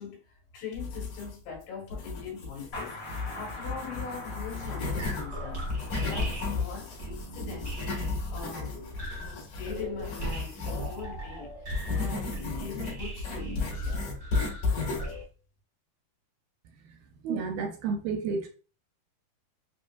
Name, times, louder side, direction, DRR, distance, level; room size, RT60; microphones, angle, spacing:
voice 1, 0.0-5.8 6.1-7.8 8.3-8.8 9.1-11.6 11.9-14.1, left 6 dB, 85° left, 3.1 m, -42 dB
sound 1, 0.7-1.5 1.9-5.2 5.6-11.0 11.7-15.2, left 4 dB, 55° left, 2.8 m, -33 dB
sound 2, 2.7-8.1, left 1 dB, 30° left, 1.7 m, -44 dB
sound 3, 4.8-15.2, right 2 dB, 45° right, 0.8 m, -39 dB
voice 2, 17.2-18.5, right 5 dB, 80° right, 2.2 m, -31 dB
6.3 x 2.7 x 2.2 m
omnidirectional pair, 4.5 m